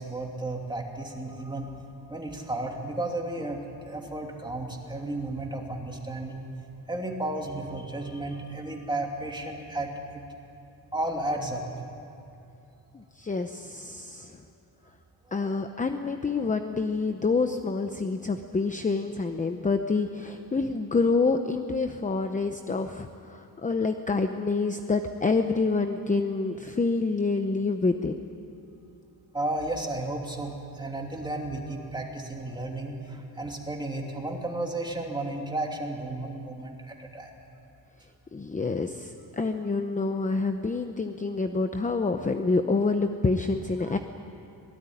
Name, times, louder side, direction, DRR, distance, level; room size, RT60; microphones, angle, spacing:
voice 1, 0.0-1.8 2.1-6.4 6.9-10.2 10.9-11.6 29.3-37.3 43.9-44.0, right 2 dB, 10° right, 1 dB, 2.9 m, -33 dB
voice 2, 12.9-14.4 15.3-28.3 38.3-44.0, left 3 dB, 20° left, 7 dB, 0.8 m, -27 dB
25.5 x 19.5 x 9.9 m, 2.8 s
wide cardioid pair, 160°, 40 cm